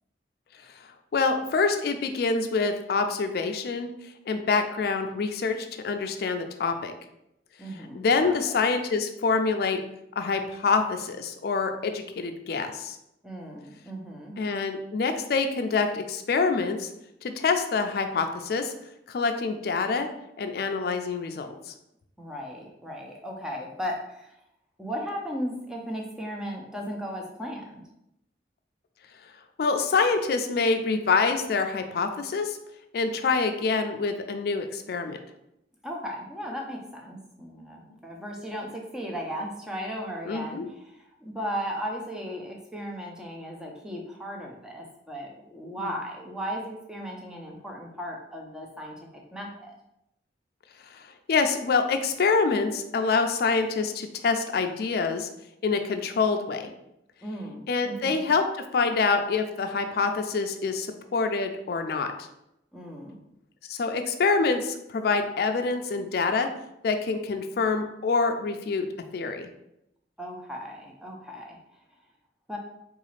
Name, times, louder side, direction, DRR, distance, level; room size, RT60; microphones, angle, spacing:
voice 1, 1.1-3.9 4.3-6.9 7.9-9.8 10.2-13.0 14.4-16.9 17.2-18.7 19.1-20.1 20.4-21.7 29.6-32.6 32.9-35.2 40.3-40.7 45.8-45.9 50.9-51.0 51.3-55.3 55.6-56.7 57.7-58.4 58.7-62.1 63.7-66.5 66.8-68.9 69.1-69.5, left 4 dB, 60° left, 6 dB, 0.4 m, -26 dB
voice 2, 7.6-8.6 13.2-14.4 22.2-24.3 24.8-27.8 35.8-49.7 57.2-58.2 62.7-63.2 70.2-71.6 72.5-72.6, equal, 5° right, 0 dB, 0.5 m, -36 dB
3.9 x 2.4 x 3.1 m, 0.82 s
head